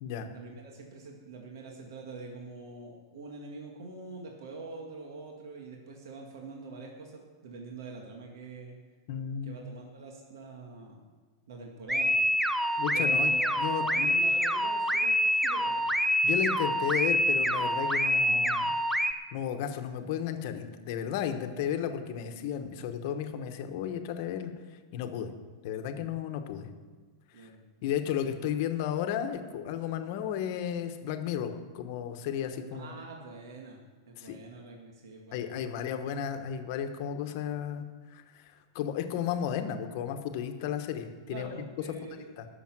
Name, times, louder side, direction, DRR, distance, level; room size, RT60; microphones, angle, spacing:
voice 1, 0.3-8.8 9.4-11.0 11.5-12.2 12.9-15.8 27.3-27.6 32.7-33.8 34.1-35.8 41.3-42.3, right 3 dB, 75° right, 1 dB, 1.9 m, -45 dB
voice 2, 9.1-9.6 12.8-13.3 13.6-14.1 16.2-18.8 19.3-24.5 24.9-25.3 25.6-26.7 27.4-27.5 27.8-32.9 34.2-34.4 35.3-37.8 38.1-41.5 42.4-42.5, left 9 dB, 45° left, 7 dB, 1.1 m, -33 dB
sound 1, 11.9-19.1, equal, ahead, 0.4 m, -26 dB
18.5 x 7.0 x 6.0 m, 1.4 s
supercardioid pair, 165°, 2 cm